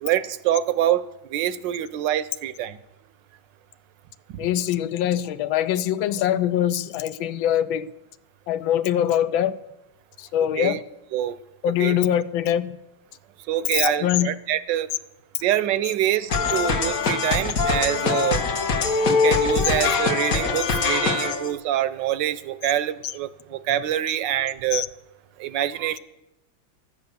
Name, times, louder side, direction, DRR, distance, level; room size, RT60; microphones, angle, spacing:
voice 1, 0.0-1.0 1.3-2.8 4.3-4.4 10.6-10.8 11.1-11.4 11.8-12.0 13.5-14.9 15.4-18.4 19.1-24.8 25.4-26.0, right 11 dB, 75° right, 15 dB, 1.2 m, -25 dB
voice 2, 4.4-7.9 8.5-9.6 10.2-10.8 11.6-12.8 13.7-14.4 24.7-24.9, left 11 dB, 85° left, 15 dB, 1.4 m, -23 dB
sound 1, 16.3-21.5, left 4 dB, 50° left, 1.4 m, -22 dB
12.5 x 9.2 x 6.9 m, 0.94 s
omnidirectional pair, 2.1 m